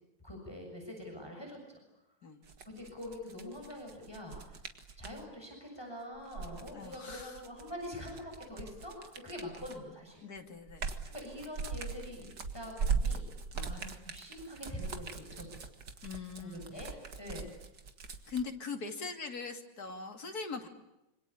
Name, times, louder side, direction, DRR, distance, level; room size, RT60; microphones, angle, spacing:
voice 1, 0.2-1.8 2.7-4.6 5.0-10.2 11.1-12.3 12.5-13.3 13.6-15.6 16.4-17.5, left 1 dB, 15° left, 1 dB, 7.1 m, -45 dB
sound 1, 2.4-5.2 6.2-9.9 10.4-18.4, right 5 dB, 70° right, 2.6 m, -39 dB
voice 2, 6.7-7.4 10.2-10.8 13.5-13.7 16.0-16.8 18.3-20.7, left 4 dB, 55° left, 4 dB, 3.2 m, -41 dB
26.5 x 25.5 x 8.6 m, 0.90 s
omnidirectional pair, 2.0 m